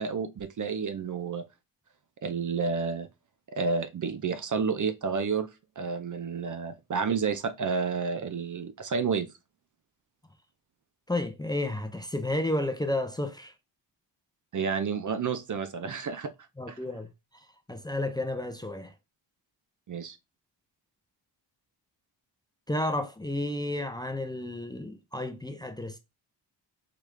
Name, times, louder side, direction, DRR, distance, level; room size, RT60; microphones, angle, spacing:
voice 1, 0.0-1.5 2.2-3.1 3.5-5.5 5.8-9.3 14.5-16.3 16.7-16.8 19.9-20.2, right 5 dB, 40° right, 0.5 m, -30 dB
voice 2, 11.1-13.5 16.6-18.9 22.7-26.0, left 1 dB, 10° left, 0.5 m, -32 dB
4.9 x 2.4 x 3.2 m
cardioid pair, 80°, 46 cm